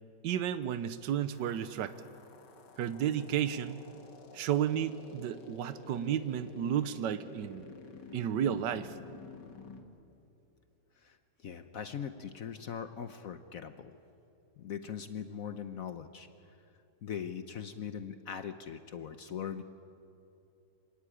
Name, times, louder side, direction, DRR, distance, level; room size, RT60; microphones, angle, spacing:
voice 1, 0.2-1.9 2.8-3.8 4.3-7.7 8.1-9.0, right 9 dB, 85° right, 12 dB, 1.5 m, -32 dB
sound 1, 1.3-9.8, left 4 dB, 85° left, 2.4 m, -51 dB
voice 2, 11.0-14.0 14.6-16.3 17.0-19.6, left 8 dB, 60° left, 10 dB, 1.1 m, -41 dB
26.5 x 17.0 x 10.0 m, 2.7 s
omnidirectional pair, 1.8 m